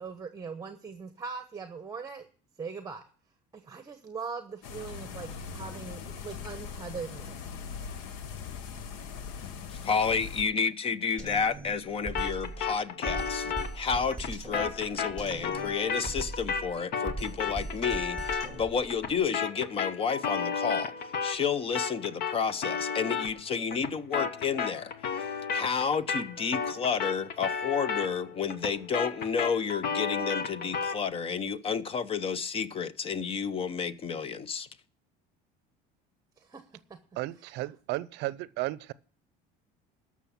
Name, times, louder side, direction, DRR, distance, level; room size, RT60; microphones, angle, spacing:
voice 1, 0.0-2.3 2.6-3.0 3.5-7.3 36.4-36.6 36.9-37.0, right 5 dB, 20° right, 1.1 m, -40 dB
sound 1, 4.6-10.4, left 6 dB, 90° left, 1.1 m, -40 dB
voice 2, 9.8-34.7, left 6 dB, 30° left, 0.8 m, -31 dB
Drum kit, 11.2-19.2, right 2 dB, 5° left, 2.5 m, -40 dB
sound 2, 12.1-21.5 21.7-31.0, left 6 dB, 55° left, 1.3 m, -33 dB
voice 3, 37.2-38.9, right 18 dB, 65° right, 0.6 m, -34 dB
13.0 x 6.1 x 7.1 m
cardioid pair, 135°, 19 cm